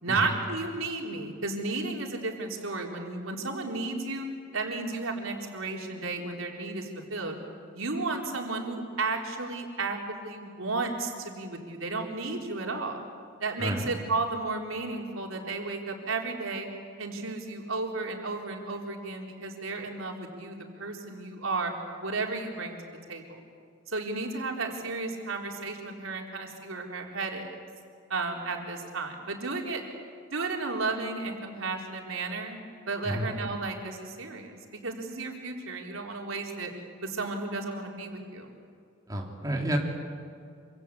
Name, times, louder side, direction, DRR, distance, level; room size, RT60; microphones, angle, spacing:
voice 1, 0.0-4.3 4.5-7.3 7.7-13.0 13.4-16.7 17.0-21.7 22.0-22.8 23.1-23.2 23.9-27.6 28.1-29.8 30.3-32.6 32.9-34.6 34.8-36.7 37.0-38.5, right 3 dB, 90° right, 1 dB, 4.1 m, -33 dB
voice 2, 39.1-39.8, equal, 20° right, 0 dB, 3.2 m, -30 dB
26.5 x 26.0 x 8.5 m, 2.3 s
head